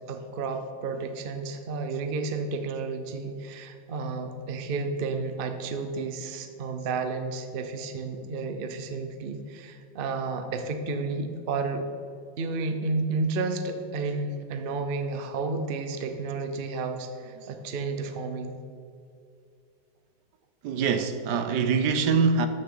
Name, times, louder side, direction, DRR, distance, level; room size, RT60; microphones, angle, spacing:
voice 1, 0.1-11.8 12.4-18.5, right 3 dB, 90° right, 0.4 m, -31 dB
voice 2, 20.6-22.5, right 5 dB, 70° right, 1.2 m, -24 dB
13.0 x 6.5 x 3.8 m
omnidirectional pair, 2.1 m